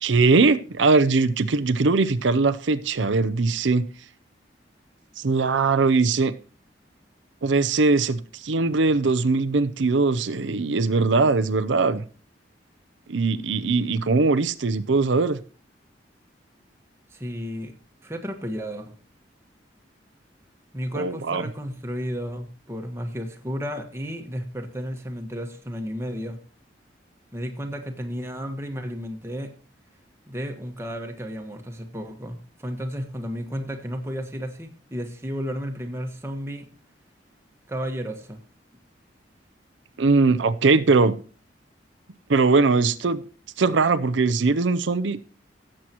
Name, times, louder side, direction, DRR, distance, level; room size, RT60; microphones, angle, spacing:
voice 1, 0.0-3.8 5.2-6.3 7.4-12.0 13.1-15.4 20.9-21.4 40.0-41.2 42.3-43.2 43.6-45.2, right 3 dB, 85° right, 12 dB, 0.6 m, -21 dB
voice 2, 17.1-17.7 18.0-18.9 20.7-26.4 27.3-29.5 30.3-36.7 37.7-38.4, equal, 15° right, 4 dB, 1.5 m, -33 dB
17.5 x 7.5 x 3.0 m, 0.39 s
head